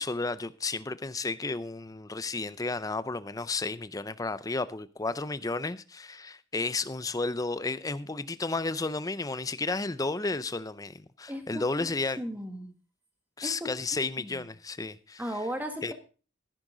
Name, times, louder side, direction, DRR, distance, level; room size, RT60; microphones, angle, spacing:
voice 1, 0.0-12.2 13.4-15.2 15.8-15.9, left 3 dB, 15° left, 0.5 m, -32 dB
voice 2, 11.3-11.9 12.2-12.7 13.4-13.7 14.2-14.5 15.2-15.9, equal, 10° right, 1.8 m, -36 dB
14.0 x 11.0 x 3.9 m
head